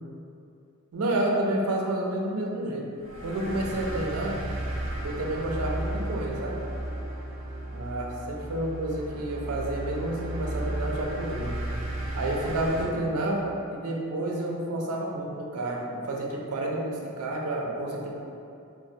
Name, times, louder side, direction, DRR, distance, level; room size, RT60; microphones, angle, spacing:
voice 1, 0.9-2.9 3.2-4.4 5.0-6.6 7.7-11.6 12.1-18.1, right 1 dB, 80° right, -1 dB, 0.4 m, -30 dB
sound 1, 3.0-12.8, right 1 dB, 30° right, 0.6 m, -34 dB
3.1 x 2.1 x 2.7 m, 2.5 s
head